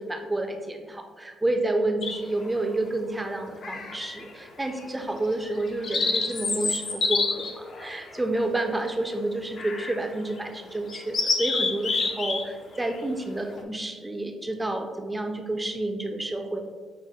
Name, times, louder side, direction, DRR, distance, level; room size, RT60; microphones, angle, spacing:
voice 1, 0.0-4.2 4.6-16.6, right 2 dB, 15° right, 4 dB, 0.4 m, -29 dB
sound 1, 2.0-2.5 3.6-4.3 4.7-4.9 5.4-8.9 9.6-10.0 10.4-10.5 10.9-12.4 12.7-13.0, left 4 dB, 55° left, 0.5 m, -28 dB
6.0 x 2.0 x 2.3 m, 1.5 s
cardioid pair, 90°, 0 cm